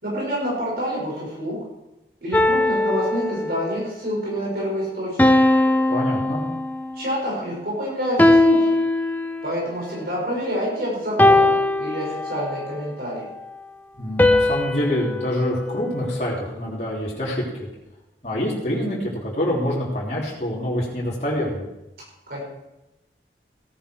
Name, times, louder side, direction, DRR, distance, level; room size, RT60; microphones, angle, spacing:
voice 1, 0.0-1.6 2.2-5.3 7.0-8.8 9.4-13.2 22.3-22.4, equal, 55° right, -5 dB, 6.2 m, -27 dB
sound 1, 2.3-3.8 5.2-7.0 8.2-9.6 11.2-12.7 14.2-16.4, left 2 dB, 10° left, 0.5 m, -20 dB
voice 2, 5.9-6.4 14.0-17.7 18.2-21.6, left 1 dB, 40° left, -6 dB, 3.7 m, -26 dB
16.5 x 10.5 x 4.8 m, 0.96 s
head